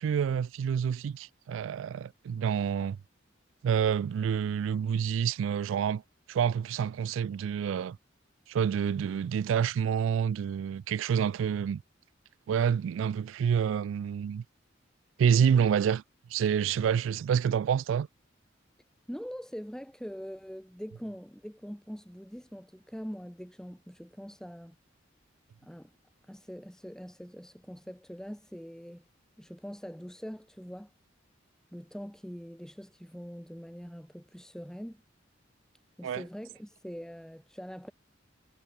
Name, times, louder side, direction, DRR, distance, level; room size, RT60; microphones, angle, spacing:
voice 1, 0.0-3.0 3.6-6.0 6.3-8.0 8.5-11.8 12.5-14.4 15.2-16.0 16.3-18.1 36.0-36.2, right 7 dB, 90° right, 0.3 m, -28 dB
voice 2, 19.1-24.8 25.6-25.9 26.2-29.1 29.4-30.9 31.7-35.0 36.0-37.9, equal, 5° left, 1.9 m, -43 dB
head